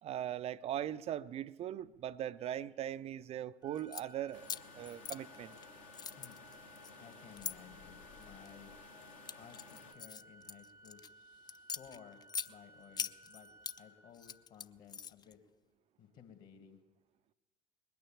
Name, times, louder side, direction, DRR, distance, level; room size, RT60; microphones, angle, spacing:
voice 1, 0.0-5.6, right 11 dB, 35° right, 16 dB, 0.4 m, -40 dB
Organ, 3.6-14.7, right 1 dB, 85° right, 0.9 m, -59 dB
sound 1, 3.8-4.1 4.4-5.7 5.9-7.5 8.2-8.6 9.0-11.1 11.5-12.5 13.0-13.8 14.1-15.3, left 6 dB, 25° left, 0.4 m, -42 dB
sound 2, 4.3-9.9, left 5 dB, 70° left, 1.6 m, -56 dB
voice 2, 7.0-8.7 9.4-13.5 13.8-15.4 16.0-16.8, left 8 dB, 50° left, 7 dB, 2.1 m, -57 dB
20.5 x 9.4 x 7.3 m, 1.2 s
figure-of-eight pair, 60°, 18 cm